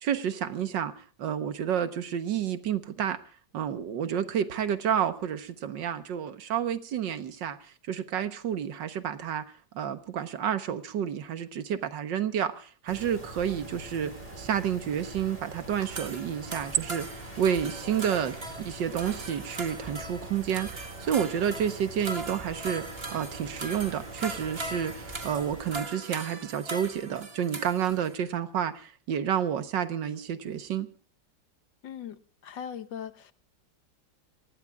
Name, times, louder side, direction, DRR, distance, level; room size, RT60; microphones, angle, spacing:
voice 1, 0.0-3.2 3.5-7.6 7.9-9.4 9.8-22.9 23.1-30.9, right 9 dB, 85° right, 1.8 m, -30 dB
sound 1, 12.9-25.9, right 1 dB, 20° right, 5.0 m, -44 dB
sound 2, 15.7-28.2, right 2 dB, 35° right, 1.7 m, -40 dB
voice 2, 31.8-33.3, left 8 dB, 85° left, 1.8 m, -40 dB
28.5 x 19.5 x 2.4 m
omnidirectional pair, 1.9 m